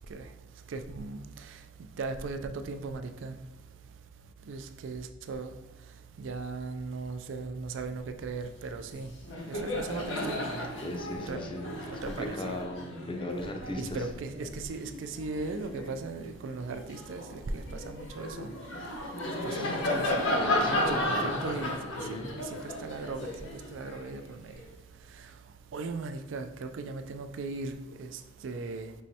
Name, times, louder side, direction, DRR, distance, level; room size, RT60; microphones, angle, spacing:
voice 1, 0.7-3.4 4.5-5.5 5.9-9.1 9.5-10.7 11.3-11.4 11.9-12.6 13.8-18.5 19.3-20.3 20.6-24.6 25.0-25.4 25.7-28.9, right 3 dB, 80° right, 0.4 m, -38 dB
Laughter, 8.8-9.0 9.2-15.9 16.5-24.6, left 1 dB, 90° left, 1.0 m, -34 dB
voice 2, 10.7-14.1 19.5-19.9 20.4-22.3, left 1 dB, 25° left, 0.5 m, -38 dB
5.5 x 3.1 x 2.8 m
head